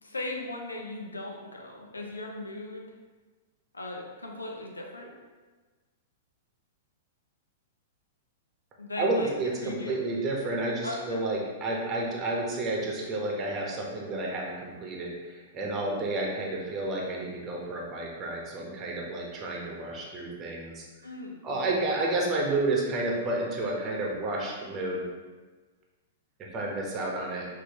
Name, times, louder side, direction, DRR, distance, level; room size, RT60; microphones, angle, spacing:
voice 1, 0.0-2.9 3.7-5.1 8.8-9.3 9.6-10.0 10.8-11.2 21.0-21.4, left 2 dB, 80° left, 1 dB, 0.7 m, -38 dB
voice 2, 9.0-20.8 21.4-25.0 26.4-27.5, right 2 dB, 25° right, -2 dB, 1.1 m, -31 dB
6.1 x 2.8 x 2.9 m, 1.3 s
figure-of-eight pair, 105°, 0 cm